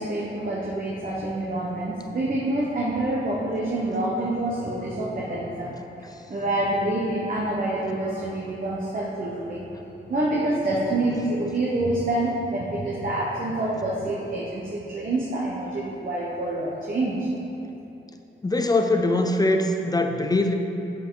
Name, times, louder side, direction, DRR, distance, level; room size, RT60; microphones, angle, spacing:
voice 1, 0.0-5.7 6.3-9.7 10.1-17.3, right 1 dB, 45° right, -5 dB, 1.1 m, -27 dB
voice 2, 18.4-20.5, left 2 dB, 20° left, 5 dB, 0.5 m, -22 dB
7.6 x 7.6 x 3.9 m, 3.0 s
cardioid pair, 90°, 20 cm